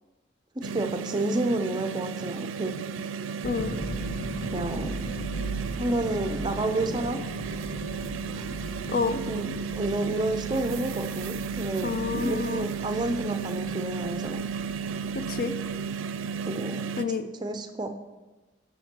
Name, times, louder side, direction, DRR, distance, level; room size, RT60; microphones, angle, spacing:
voice 1, 0.6-2.8 4.5-4.9 5.8-7.2 8.3-8.4 9.3-14.4 16.5-16.9 17.4-17.9, right 2 dB, 20° right, 7 dB, 0.5 m, -30 dB
sound 1, 0.6-17.0, right 6 dB, 90° right, 0.4 m, -34 dB
sound 2, 3.4-16.3, right 1 dB, 90° left, 0.8 m, -38 dB
voice 2, 3.4-3.8 8.9-9.2 11.8-12.7 15.1-15.5 17.0-17.3, left 4 dB, 50° left, 10 dB, 0.4 m, -29 dB
10.5 x 6.5 x 2.9 m, 1.2 s
head